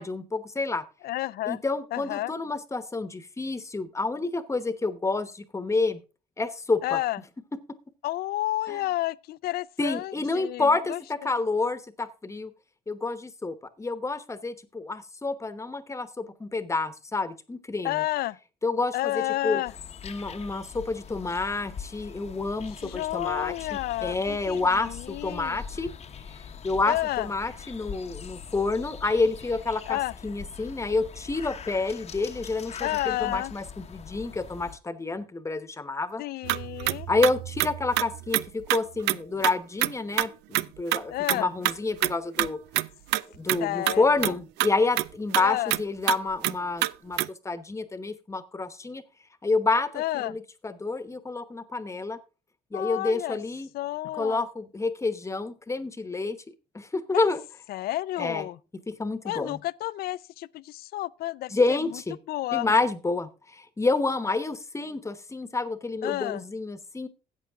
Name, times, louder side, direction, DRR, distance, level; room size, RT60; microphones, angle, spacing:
voice 1, 0.0-0.8 1.5-6.0 6.4-7.0 8.7-8.8 9.8-12.5 12.9-18.0 18.6-19.6 20.0-25.9 26.6-36.2 37.1-42.6 43.3-47.2 47.4-49.0 49.4-52.2 52.7-53.7 54.2-57.4 58.2-58.5 58.9-59.6 61.5-62.2 62.5-67.1, left 3 dB, 15° left, 1.0 m, -29 dB
voice 2, 1.0-1.6 1.9-2.3 6.8-7.2 8.0-11.0 17.8-18.4 18.9-19.7 22.8-25.6 26.9-27.3 29.9-30.1 32.8-33.5 36.2-37.1 41.1-41.5 43.6-44.3 45.4-45.7 49.9-50.3 52.7-53.4 53.7-54.4 57.1-57.3 57.7-58.6 59.2-62.0 62.3-62.7 66.0-66.4, left 16 dB, 65° left, 0.4 m, -31 dB
sound 1, 19.7-34.8, left 7 dB, 40° left, 0.9 m, -42 dB
sound 2, 36.4-39.2 39.4-39.5 39.8-39.9 40.2-40.3 40.5-40.6 40.9-41.0 41.3-41.7 42.0-42.5 42.7-42.9 43.1-43.2 43.5-43.6 43.9-44.0 44.2-44.3 44.6-44.7 45.0-45.1 45.3-45.4 45.7-45.8 46.1-46.2 46.4-46.5 46.8-46.9 47.2-47.3, right 17 dB, 85° right, 0.4 m, -26 dB
13.5 x 8.3 x 3.5 m
cardioid pair, 110°, 17 cm